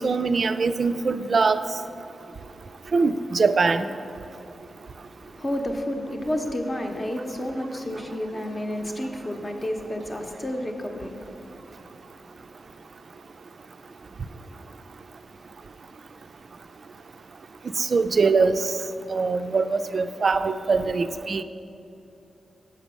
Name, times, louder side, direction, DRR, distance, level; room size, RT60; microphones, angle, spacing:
voice 1, 0.0-1.6 2.9-3.9 17.8-18.7 19.1-21.4, right 4 dB, 55° right, 11 dB, 0.3 m, -22 dB
voice 2, 5.2-11.6, left 1 dB, 30° left, 3 dB, 0.8 m, -31 dB
6.7 x 5.1 x 6.3 m, 2.7 s
cardioid pair, 70°, 0 cm